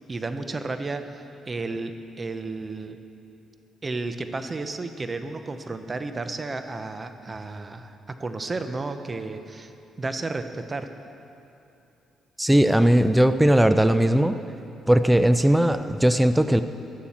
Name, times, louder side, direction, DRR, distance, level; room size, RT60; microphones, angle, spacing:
voice 1, 0.1-3.0 3.8-9.7 10.0-10.9, right 3 dB, 30° right, 8 dB, 0.8 m, -32 dB
voice 2, 12.4-14.4 14.9-16.6, right 1 dB, 5° right, 10 dB, 0.5 m, -18 dB
16.0 x 11.5 x 4.4 m, 2.7 s
cardioid pair, 90°, 0 cm